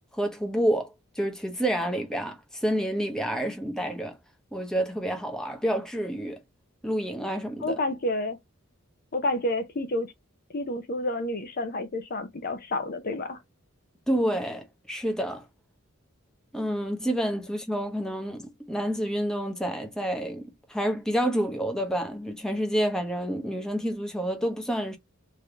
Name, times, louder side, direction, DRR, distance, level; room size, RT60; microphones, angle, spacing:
voice 1, 0.1-4.2 4.5-6.4 6.8-7.8 14.1-15.5 16.5-25.0, equal, 5° left, 0.8 m, -29 dB
voice 2, 7.6-8.4 9.1-10.1 10.5-13.4, left 1 dB, 45° left, 0.6 m, -29 dB
3.4 x 2.7 x 3.3 m
head